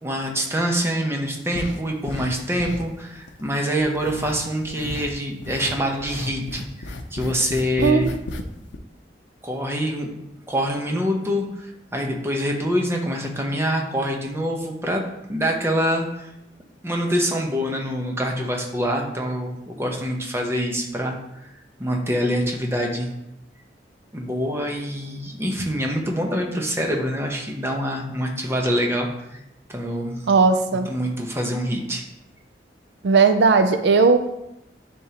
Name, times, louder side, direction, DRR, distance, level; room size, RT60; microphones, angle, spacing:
voice 1, 0.0-8.1 9.4-10.1 10.5-15.0 15.3-16.3 16.8-21.4 21.8-23.1 24.1-29.4 29.7-30.2 30.9-32.0, equal, 15° right, 1 dB, 0.8 m, -25 dB
sound 1, 1.5-2.3 2.6-3.4 3.8-5.1 5.4-8.4 8.7-8.8, left 2 dB, 85° left, 0.6 m, -34 dB
voice 2, 7.8-8.2 30.3-30.9 33.0-34.2, right 4 dB, 75° right, 8 dB, 0.4 m, -17 dB
10.0 x 3.6 x 2.9 m, 0.86 s
head